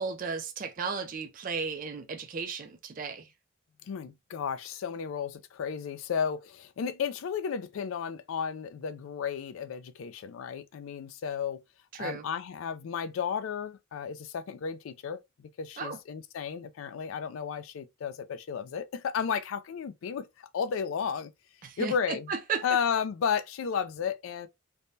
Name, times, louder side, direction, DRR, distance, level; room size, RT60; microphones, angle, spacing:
voice 1, 0.0-3.3 11.9-12.2 15.8-16.0 21.6-22.7, right 5 dB, 40° right, 0.4 m, -35 dB
voice 2, 3.8-11.6 12.0-21.3 21.8-22.3 22.6-24.5, left 7 dB, 75° left, 0.3 m, -33 dB
3.3 x 2.1 x 2.6 m
head